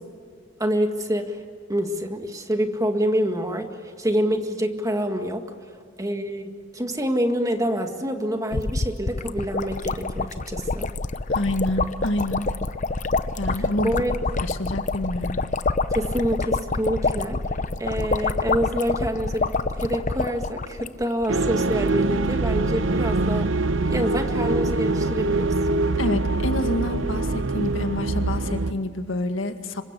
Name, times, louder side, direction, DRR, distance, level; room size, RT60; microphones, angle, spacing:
voice 1, 0.6-1.4 1.7-5.5 6.0-10.9 13.6-14.1 15.9-17.4 17.8-23.5 23.9-25.5, equal, 15° right, 5 dB, 1.9 m, -26 dB
sound 1, 8.5-21.3 21.6-21.7 21.9-22.1, left 3 dB, 40° left, 0.7 m, -27 dB
voice 2, 11.3-12.4 13.4-13.9 14.4-15.4 26.0-29.8, left 1 dB, 85° left, 7 dB, 1.9 m, -28 dB
sound 2, 21.3-28.7, right 2 dB, 75° right, 0.8 m, -24 dB
26.5 x 24.0 x 8.3 m, 2.1 s
head